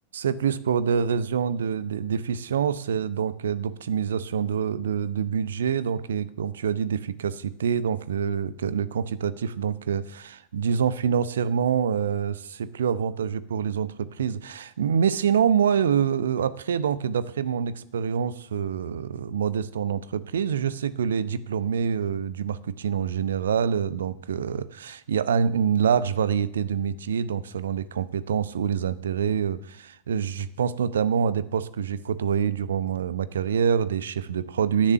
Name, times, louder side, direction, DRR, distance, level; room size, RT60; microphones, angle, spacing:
voice 1, 0.1-34.9, right 7 dB, 65° right, 17 dB, 0.7 m, -26 dB
13.0 x 7.3 x 8.9 m, 0.72 s
figure-of-eight pair, 90°, 0 cm